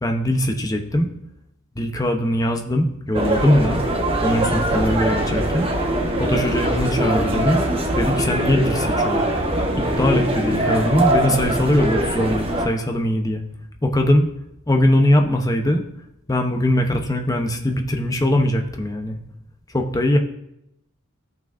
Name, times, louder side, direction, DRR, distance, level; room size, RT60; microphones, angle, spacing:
voice 1, 0.0-1.1 1.8-3.8 4.2-5.7 6.2-7.6 7.9-9.2 9.8-13.4 13.8-14.3 14.7-15.8 16.3-19.2 19.7-20.2, left 1 dB, 15° left, 3 dB, 0.8 m, -21 dB
sound 1, 3.1-12.7, right 1 dB, 25° right, 1.0 m, -22 dB
13.5 x 6.0 x 2.6 m, 0.80 s
head